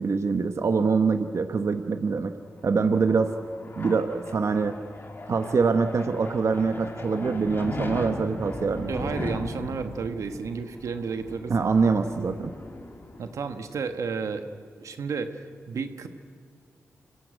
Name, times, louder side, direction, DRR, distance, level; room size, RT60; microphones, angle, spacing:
voice 1, 0.0-2.3 2.6-3.3 3.8-4.7 5.3-9.3 11.5-12.5, right 4 dB, 65° right, 7 dB, 1.1 m, -24 dB
sound 1, 2.6-13.9, left 2 dB, 45° left, 3.1 m, -38 dB
voice 2, 8.9-11.7 13.2-14.5 14.8-16.1, right 5 dB, 85° right, 8 dB, 1.3 m, -32 dB
26.0 x 16.5 x 9.1 m, 2.2 s
cardioid pair, 55°, 5 cm